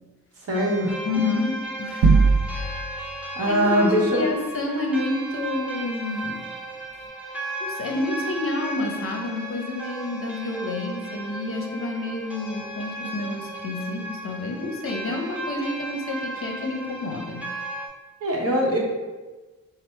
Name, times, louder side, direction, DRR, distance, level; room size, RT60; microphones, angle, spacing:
sound 1, 0.5-17.9, right 1 dB, 5° right, 0.6 m, -35 dB
voice 1, 0.5-1.0 3.4-4.2 18.2-18.8, equal, 50° right, -3 dB, 1.0 m, -21 dB
voice 2, 1.1-2.3 3.5-6.5 7.6-17.5, left 2 dB, 45° left, 2 dB, 0.6 m, -29 dB
sound 2, 2.0-3.0, right 4 dB, 65° right, 0.5 m, -18 dB
4.1 x 2.0 x 4.3 m, 1.2 s
cardioid pair, 110°, 32 cm